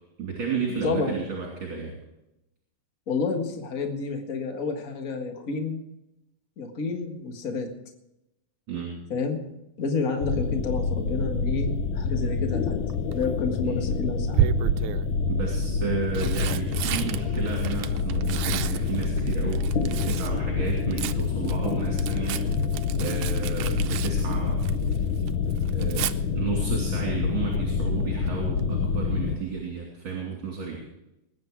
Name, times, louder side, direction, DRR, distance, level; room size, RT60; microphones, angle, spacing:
voice 1, 0.2-2.0 8.7-9.0 13.6-13.8 15.3-22.4 23.0-24.6 25.7-30.8, right 5 dB, 45° right, -3 dB, 3.5 m, -32 dB
voice 2, 0.8-1.2 3.1-5.8 6.6-7.7 9.1-9.4 9.8-12.8 13.1-14.5, left 4 dB, 35° left, 4 dB, 1.7 m, -29 dB
sound 1, 10.2-29.4, left 5 dB, 80° left, 1.1 m, -27 dB
Tearing, 12.8-13.3 14.3-15.1 15.9-20.4 20.7-25.0 25.3-26.1 28.0-28.3 28.6-28.7, right 12 dB, 80° right, 2.0 m, -31 dB
20.0 x 9.7 x 4.7 m, 0.90 s
omnidirectional pair, 3.4 m